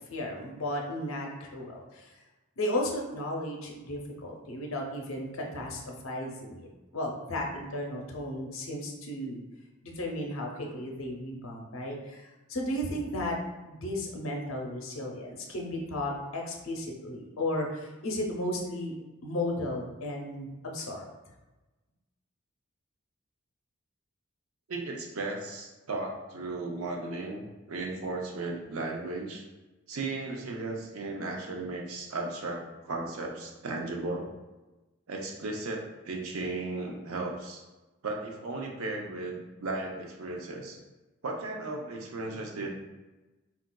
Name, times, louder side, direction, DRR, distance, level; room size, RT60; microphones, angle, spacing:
voice 1, 0.1-2.1 2.6-9.4 9.8-13.4 13.6-18.9 19.2-21.1, left 1 dB, 75° left, 0 dB, 0.6 m, -34 dB
voice 2, 24.7-29.4 29.9-34.3 35.1-37.6 38.0-40.8 41.2-42.7, right 2 dB, 90° right, 0 dB, 0.5 m, -35 dB
3.8 x 2.3 x 2.2 m, 1.1 s
head